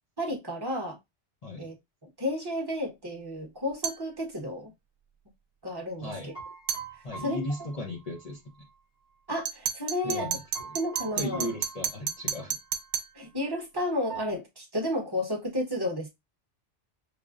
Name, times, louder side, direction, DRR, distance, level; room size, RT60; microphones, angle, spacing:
voice 1, 0.2-1.0 1.6-1.7 2.2-4.7 5.6-6.3 7.2-7.4 9.3-10.3 10.7-11.5 13.1-16.1, left 1 dB, 20° right, 0.9 m, -32 dB
voice 2, 1.4-1.7 6.0-6.3 7.0-8.4 10.0-10.7 11.2-12.6, left 1 dB, 40° left, 0.7 m, -36 dB
sound 1, 3.8-4.1 6.7-6.9 9.5-13.2, right 8 dB, 80° right, 0.9 m, -32 dB
sound 2, 6.1-8.7 10.2-12.5 12.7-12.9 14.1-14.3, right 6 dB, 85° left, 2.3 m, -44 dB
5.0 x 2.1 x 2.4 m
omnidirectional pair, 1.2 m